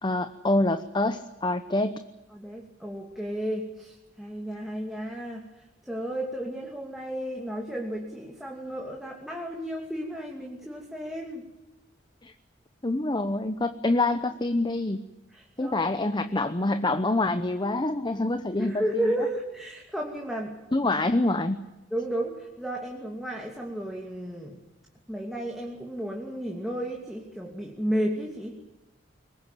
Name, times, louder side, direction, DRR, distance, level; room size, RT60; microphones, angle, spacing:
voice 1, 0.0-2.0 12.2-12.3 12.8-15.0 15.6-19.1 20.7-21.6, left 2 dB, 25° left, 10 dB, 0.9 m, -26 dB
voice 2, 2.3-5.4 5.8-11.4 15.3-15.8 18.6-20.5 21.9-24.6 25.1-28.6, right 1 dB, ahead, -1 dB, 2.8 m, -33 dB
23.0 x 20.5 x 9.2 m, 1.0 s
head